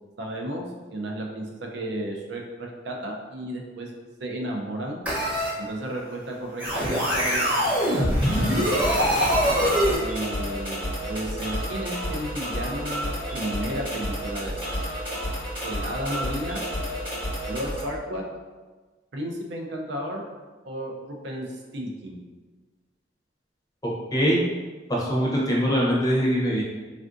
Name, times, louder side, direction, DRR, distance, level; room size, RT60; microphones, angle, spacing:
voice 1, 0.2-3.9 4.2-5.0 5.6-8.4 9.9-14.6 15.6-16.6 17.5-18.2 19.1-20.2 20.6-22.2, right 1 dB, 65° right, 1 dB, 0.5 m, -33 dB
sound 1, 5.1-5.5 6.6-10.0, equal, 10° right, 0.8 m, -23 dB
sound 2, 8.2-17.8, equal, 30° right, 1.1 m, -31 dB
voice 2, 23.8-24.4 24.9-26.6, equal, 20° left, -4 dB, 0.6 m, -23 dB
3.4 x 2.4 x 2.5 m, 1.3 s
head